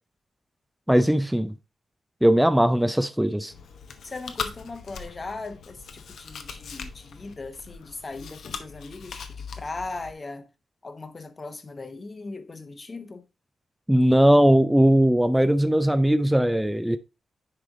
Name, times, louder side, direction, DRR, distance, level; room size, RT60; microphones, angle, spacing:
voice 1, 0.9-1.5 2.2-3.5 13.9-17.0, equal, 5° right, 0.4 m, -19 dB
Chewing mastication, 3.5-10.1, left 6 dB, 75° left, 0.9 m, -40 dB
voice 2, 4.0-10.5 10.8-13.2, left 3 dB, 30° left, 1.0 m, -38 dB
9.8 x 3.4 x 3.6 m
cardioid pair, 110°, 0 cm